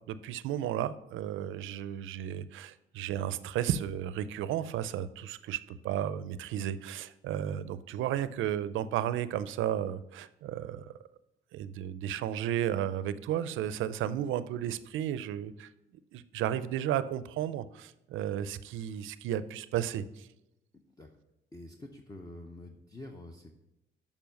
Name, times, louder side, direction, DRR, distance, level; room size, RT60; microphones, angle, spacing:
voice 1, 0.1-10.9 11.5-15.7 16.1-20.3, right 10 dB, 80° right, 15 dB, 0.5 m, -33 dB
voice 2, 21.5-23.5, left 1 dB, 20° left, 3 dB, 0.7 m, -47 dB
6.9 x 5.5 x 5.2 m, 0.88 s
cardioid pair, 90°, 20 cm